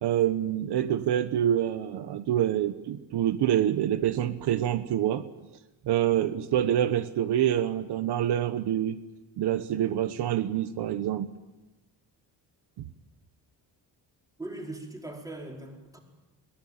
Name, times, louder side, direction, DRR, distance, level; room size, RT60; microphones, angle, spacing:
voice 1, 0.0-5.2 5.8-9.0 9.4-11.3 12.8-12.9, right 11 dB, 70° right, 11 dB, 1.2 m, -26 dB
voice 2, 14.4-16.0, right 2 dB, 10° right, 1 dB, 4.8 m, -40 dB
22.5 x 19.0 x 8.9 m, 1.1 s
cardioid pair, 140°, 41 cm